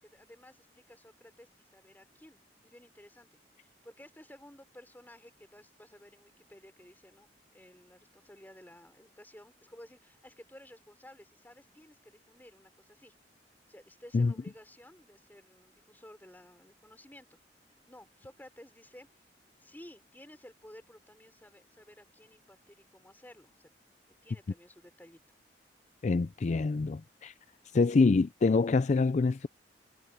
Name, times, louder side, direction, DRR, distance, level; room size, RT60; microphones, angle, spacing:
voice 1, 0.0-13.1 13.7-17.4 17.9-19.1 19.6-23.7 24.2-25.2, left 1 dB, 10° left, 3.6 m, -54 dB
voice 2, 26.0-27.3 27.7-29.5, left 4 dB, 40° left, 0.4 m, -26 dB
head